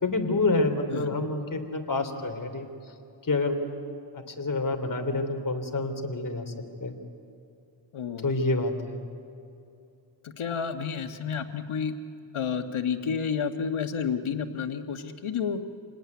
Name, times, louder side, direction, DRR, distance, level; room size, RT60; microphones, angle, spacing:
voice 1, 0.0-2.7 3.2-3.6 4.1-6.5 6.8-6.9 8.2-9.0, left 2 dB, 40° left, 5 dB, 3.0 m, -28 dB
voice 2, 7.9-8.2 10.2-11.9 12.3-15.6, left 6 dB, 90° left, 7 dB, 1.5 m, -30 dB
27.5 x 19.0 x 9.5 m, 2.6 s
cardioid pair, 65°, 48 cm